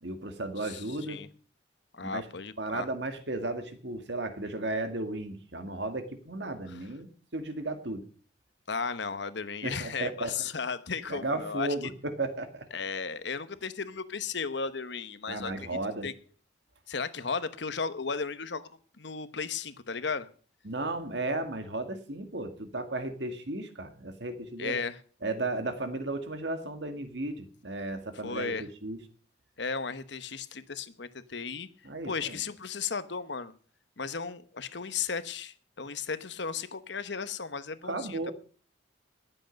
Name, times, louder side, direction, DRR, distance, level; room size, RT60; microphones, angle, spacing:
voice 1, 0.0-1.2 2.0-2.2 2.6-8.0 9.6-10.3 11.1-12.7 15.3-16.1 20.6-24.8 25.2-29.0 31.8-32.4 37.8-38.3, right 2 dB, 60° right, 8 dB, 1.9 m, -34 dB
voice 2, 0.6-1.3 1.9-2.9 6.7-6.9 8.7-11.7 12.7-16.1 16.9-18.7 19.0-20.3 24.6-25.0 28.2-28.7 29.6-31.7 32.0-33.5 34.0-38.3, left 5 dB, 65° left, 13 dB, 1.0 m, -35 dB
20.0 x 8.0 x 5.2 m, 0.41 s
head